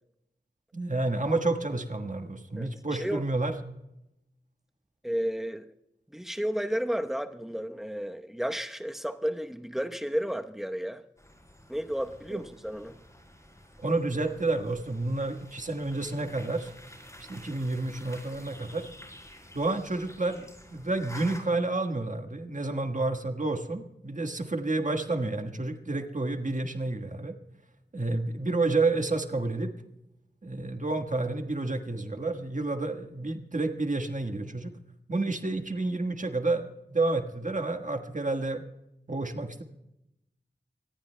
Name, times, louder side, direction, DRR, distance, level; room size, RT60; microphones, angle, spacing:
voice 1, 0.7-3.5 12.3-12.4 13.8-16.7 17.2-18.9 19.5-27.4 27.9-29.7 30.4-34.7 35.1-38.6 39.1-39.6, right 2 dB, 45° right, 5 dB, 1.5 m, -30 dB
voice 2, 5.0-5.7 6.1-11.0 11.7-13.0, equal, ahead, 6 dB, 0.9 m, -32 dB
sound 1, 11.2-21.4, left 1 dB, 15° left, 5.6 m, -50 dB
25.0 x 20.5 x 2.2 m, 0.89 s
wide cardioid pair, 70°, 18 cm